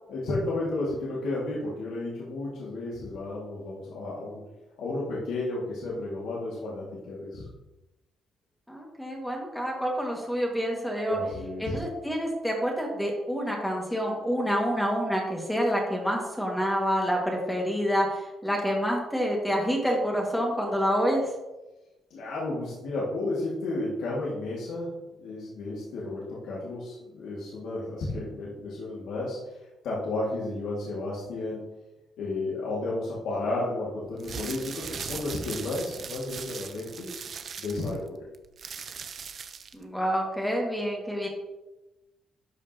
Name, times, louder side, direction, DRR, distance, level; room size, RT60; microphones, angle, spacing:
voice 1, 0.1-4.4 4.8-7.5 11.1-11.8 22.1-24.9 25.2-29.6 29.8-31.7 32.2-37.1 37.6-38.2, left 2 dB, 80° left, -6 dB, 2.0 m, -32 dB
voice 2, 8.7-11.2 11.6-21.3 39.7-41.3, equal, 5° left, -1 dB, 1.8 m, -27 dB
sound 1, 34.1-39.8, right 6 dB, 50° right, 0.6 m, -39 dB
12.0 x 5.1 x 2.8 m, 1.0 s
cardioid pair, 90°, 0 cm